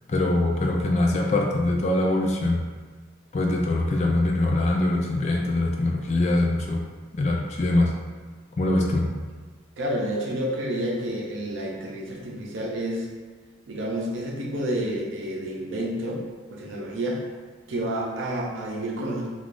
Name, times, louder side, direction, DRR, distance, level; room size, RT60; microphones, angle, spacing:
voice 1, 0.1-2.6 3.3-6.8 7.1-7.9 8.6-9.1, left 2 dB, 35° left, -1 dB, 0.3 m, -23 dB
voice 2, 9.8-13.1 13.7-16.2 16.5-17.2 17.7-19.3, right 1 dB, 75° right, -2 dB, 0.6 m, -29 dB
3.5 x 2.4 x 2.5 m, 1.4 s
head